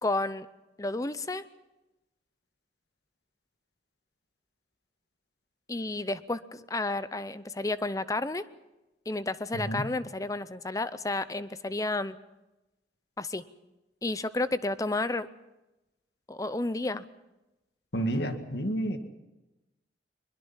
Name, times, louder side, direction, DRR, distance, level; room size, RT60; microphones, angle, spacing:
voice 1, 0.0-0.5 0.8-1.4 5.7-8.4 9.1-12.2 13.2-13.4 14.0-15.3 16.3-17.1, left 2 dB, 20° left, 14 dB, 0.6 m, -31 dB
voice 2, 9.5-9.9 17.9-19.0, right 1 dB, 70° left, 7 dB, 2.0 m, -30 dB
22.0 x 22.0 x 5.7 m, 0.98 s
head